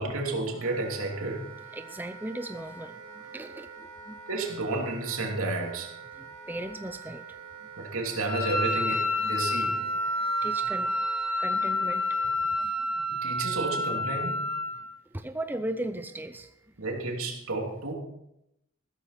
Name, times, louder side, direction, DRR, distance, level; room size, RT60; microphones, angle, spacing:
voice 1, 0.0-1.5 4.3-5.9 7.8-9.8 13.1-14.4 16.8-17.9, right 2 dB, 85° right, 0 dB, 3.2 m, -31 dB
Wind instrument woodwind instrument, 0.5-12.4, right 6 dB, 70° right, 2.7 m, -46 dB
voice 2, 1.7-4.2 6.2-7.2 9.2-9.4 10.4-10.9 11.4-12.0 12.4-12.7 15.1-16.6, right 1 dB, 10° right, 9 dB, 0.5 m, -37 dB
Wind instrument woodwind instrument 2, 8.3-14.9, left 1 dB, 50° left, 3.0 m, -29 dB
15.0 x 13.5 x 4.2 m, 0.81 s
head